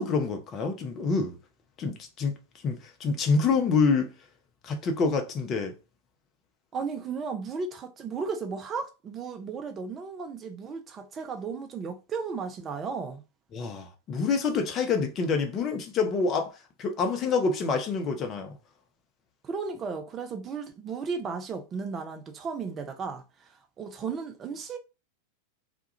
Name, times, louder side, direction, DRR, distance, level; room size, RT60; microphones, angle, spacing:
voice 1, 0.0-1.4 1.8-2.4 2.6-4.1 4.6-5.7 13.5-16.5 16.8-18.6, left 4 dB, 30° left, 0.5 m, -27 dB
voice 2, 6.7-13.2 19.4-24.8, right 5 dB, 25° right, 0.4 m, -35 dB
2.3 x 2.1 x 2.8 m
figure-of-eight pair, 90°, 0 cm